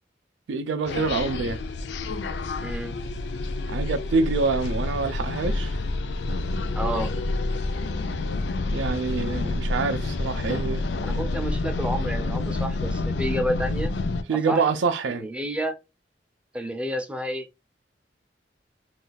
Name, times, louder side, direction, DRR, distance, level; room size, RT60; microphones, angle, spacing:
voice 1, 0.5-1.6 3.7-5.8 8.7-10.8 14.3-15.3, right 4 dB, 90° right, 0.4 m, -26 dB
sound 1, 0.9-14.2, left 2 dB, 70° left, 0.4 m, -28 dB
voice 2, 2.6-3.0 6.7-7.1 11.0-13.9 14.3-14.6 15.2-15.8 16.5-17.5, equal, 5° right, 0.4 m, -30 dB
2.4 x 2.3 x 3.9 m
head